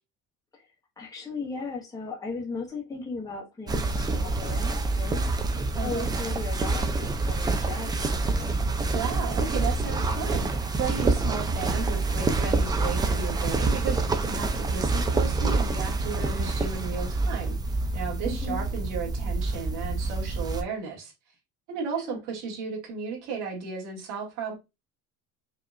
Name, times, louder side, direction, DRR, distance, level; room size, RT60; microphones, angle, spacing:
voice 1, 0.5-5.3 5.8-8.6 18.3-18.7 22.0-22.2, left 4 dB, 10° left, 1.1 m, -37 dB
sound 1, 3.7-20.6, right 3 dB, 15° right, 0.3 m, -27 dB
voice 2, 8.9-10.5 10.7-17.5 17.9-21.1 21.7-24.5, right 5 dB, 70° right, 1.9 m, -34 dB
4.9 x 2.8 x 2.4 m
cardioid pair, 155°, 31 cm